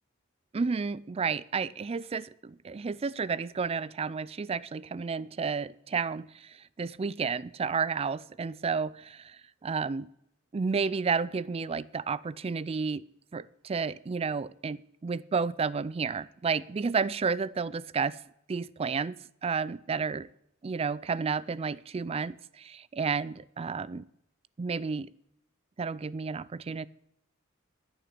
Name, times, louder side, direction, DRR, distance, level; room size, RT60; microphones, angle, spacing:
voice 1, 0.5-6.3 6.8-9.2 9.6-10.1 10.5-13.0 13.3-18.2 18.5-19.2 19.4-20.3 20.6-24.1 24.6-25.1 25.8-26.9, right 5 dB, 30° right, 19 dB, 0.4 m, -31 dB
10.0 x 8.8 x 6.6 m, 0.75 s
head